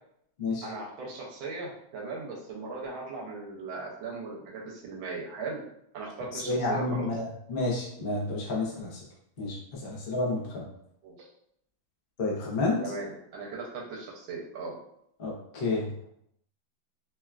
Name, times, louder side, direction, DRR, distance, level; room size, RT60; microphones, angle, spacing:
voice 1, 0.6-5.6 5.9-7.1 11.0-11.3 12.8-14.7, right 3 dB, 85° right, -3 dB, 1.4 m, -38 dB
voice 2, 6.3-7.2 7.5-9.0 9.4-10.6 12.2-12.8 15.2-16.0, left 2 dB, 80° left, -4 dB, 0.5 m, -30 dB
3.5 x 2.3 x 2.2 m, 0.73 s
omnidirectional pair, 2.1 m